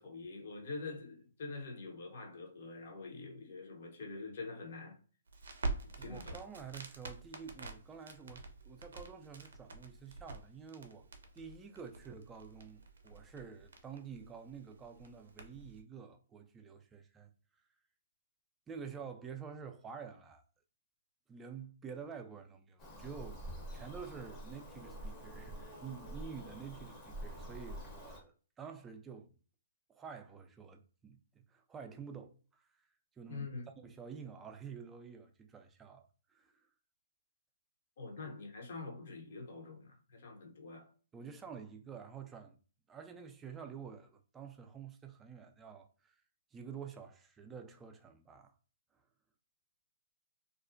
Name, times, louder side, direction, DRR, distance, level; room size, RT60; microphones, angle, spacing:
voice 1, 0.0-5.0 6.0-6.4 33.3-33.7 38.0-40.9, left 3 dB, 60° left, 0.7 m, -45 dB
Crackle, 5.3-15.8, right 3 dB, 75° right, 0.4 m, -46 dB
voice 2, 5.9-11.1 11.3-17.3 18.7-20.4 21.3-29.3 29.9-32.7 33.2-33.5 33.8-36.5 41.1-42.6 42.9-46.2 46.5-48.5, right 6 dB, 15° right, 0.3 m, -49 dB
Bird vocalization bird call bird song, 22.8-28.2, right 1 dB, 25° left, 0.7 m, -47 dB
2.4 x 2.0 x 2.5 m
hypercardioid pair, 135°, 0 cm